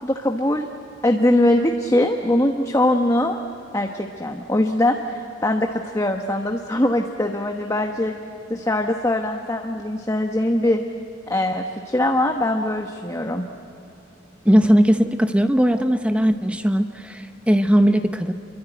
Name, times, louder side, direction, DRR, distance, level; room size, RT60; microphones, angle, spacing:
voice 1, 0.0-0.7 1.0-3.4 3.7-8.1 8.5-10.8 11.3-13.4, left 1 dB, 15° left, 3 dB, 1.2 m, -21 dB
voice 2, 14.4-18.3, equal, 5° right, 7 dB, 0.8 m, -18 dB
28.0 x 23.5 x 9.2 m, 2.8 s
head